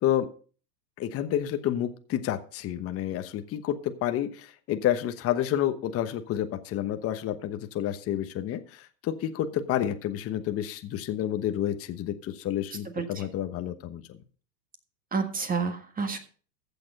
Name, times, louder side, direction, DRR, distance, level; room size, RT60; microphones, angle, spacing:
voice 1, 1.0-14.2, left 11 dB, 30° left, 9 dB, 1.1 m, -29 dB
voice 2, 12.9-13.3 15.1-16.2, right 5 dB, 15° right, 7 dB, 1.6 m, -29 dB
15.0 x 7.0 x 5.4 m, 0.40 s
hypercardioid pair, 125°, 50 cm